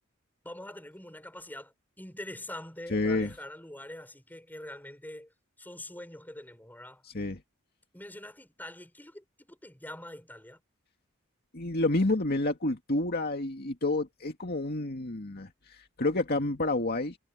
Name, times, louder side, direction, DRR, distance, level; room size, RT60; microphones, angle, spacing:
voice 1, 0.4-5.3 5.6-7.0 7.9-10.6, left 1 dB, 10° left, 5.8 m, -44 dB
voice 2, 2.9-3.3 7.1-7.4 11.5-17.2, left 2 dB, 50° left, 2.2 m, -29 dB
head